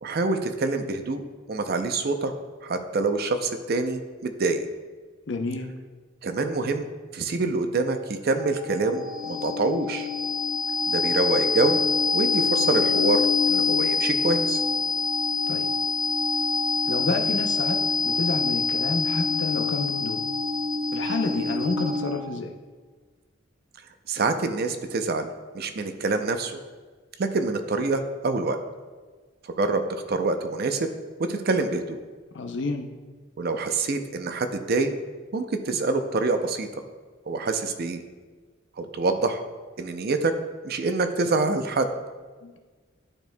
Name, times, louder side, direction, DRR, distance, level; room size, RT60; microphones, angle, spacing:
voice 1, 0.0-1.2 1.5-2.3 2.6-4.6 6.2-6.9 7.1-10.1 10.9-11.8 12.1-14.6 24.1-25.3 25.5-26.6 27.2-28.6 29.4-29.8 30.1-30.9 31.2-32.0 33.4-34.9 35.3-36.7 37.3-38.0 38.8-39.4 39.8-40.3 40.6-41.9, right 3 dB, 55° right, 7 dB, 0.5 m, -26 dB
voice 2, 5.3-5.7 15.5-15.7 16.8-20.2 20.9-22.5 32.3-32.9 42.4-42.6, left 3 dB, 65° left, 6 dB, 0.6 m, -29 dB
sound 1, 8.4-22.3, left 4 dB, 5° right, 1.5 m, -25 dB
10.5 x 4.5 x 2.2 m, 1.4 s
head